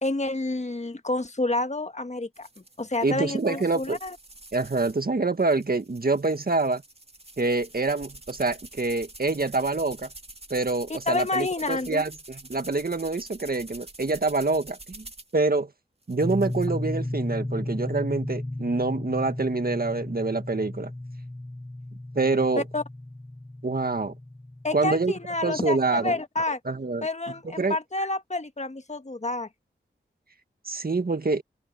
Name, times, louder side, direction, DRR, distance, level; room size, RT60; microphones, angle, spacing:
voice 1, 0.0-4.2 11.1-12.0 22.6-22.8 24.6-26.6 27.0-29.5, left 2 dB, 35° left, 1.5 m, -29 dB
sound 1, 2.3-5.0 5.4-15.3 16.0-16.7, right 2 dB, 30° right, 2.2 m, -47 dB
voice 2, 3.0-4.0 4.5-6.8 7.4-10.1 10.5-15.1 15.3-15.7 16.1-20.9 22.2-22.6 23.6-24.1 24.7-25.1 25.4-26.2 26.7-27.1 27.5-27.8 30.7-31.4, right 3 dB, 50° right, 1.8 m, -26 dB
sound 2, 16.2-25.8, left 1 dB, 10° left, 0.7 m, -34 dB
open air
cardioid pair, 45°, 20 cm